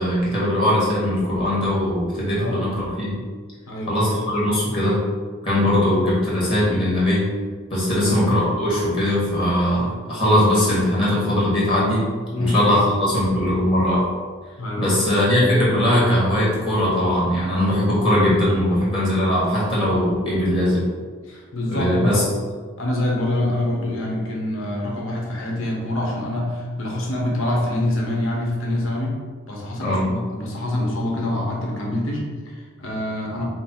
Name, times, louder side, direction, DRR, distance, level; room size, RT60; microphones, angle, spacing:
voice 1, 0.0-3.2 3.9-5.0 5.4-7.3 7.7-12.0 12.4-14.0 14.8-20.8 21.7-22.2 29.8-30.1, left 1 dB, 25° left, -8 dB, 1.3 m, -20 dB
voice 2, 3.7-4.0 8.0-8.3 12.3-12.6 14.6-14.9 21.3-22.3 22.8-29.2 29.5-33.4, left 1 dB, 85° left, -2 dB, 1.1 m, -25 dB
5.2 x 2.1 x 4.3 m, 1.5 s
head